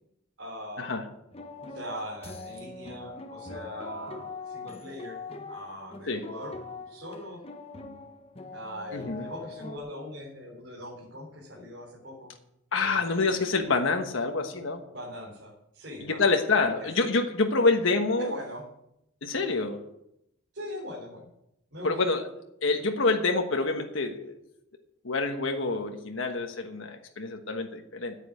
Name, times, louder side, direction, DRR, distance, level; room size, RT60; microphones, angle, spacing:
voice 1, 0.4-1.0 1.7-5.2 5.5-6.5 6.9-7.4 8.5-12.3 12.8-13.4 14.9-16.3 16.8-16.9 18.2-18.7 20.5-21.3 21.7-22.0, left 1 dB, 60° right, -6 dB, 4.0 m, -41 dB
sound 1, 1.3-9.8, left 3 dB, 30° left, 1.0 m, -42 dB
voice 2, 8.9-9.2 12.7-14.8 16.0-18.3 19.2-19.8 21.8-22.2 22.6-24.4 25.0-28.2, left 3 dB, 75° left, 4 dB, 1.3 m, -27 dB
9.7 x 8.6 x 8.5 m, 0.81 s
head